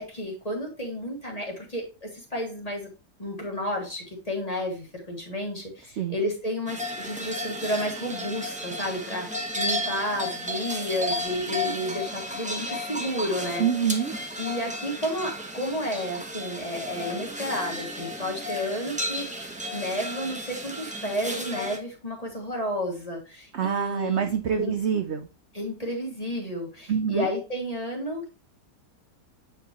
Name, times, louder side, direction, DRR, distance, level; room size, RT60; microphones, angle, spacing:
voice 1, 0.0-2.9 3.2-13.7 14.4-24.2 24.6-24.7 25.5-28.3, equal, 20° left, 0 dB, 2.0 m, -31 dB
sound 1, 6.7-21.8, left 1 dB, 5° right, 0.8 m, -33 dB
voice 2, 13.6-14.1 23.5-25.3 26.9-27.3, right 8 dB, 60° right, 6 dB, 0.7 m, -26 dB
8.5 x 5.0 x 3.0 m, 0.31 s
omnidirectional pair, 1.8 m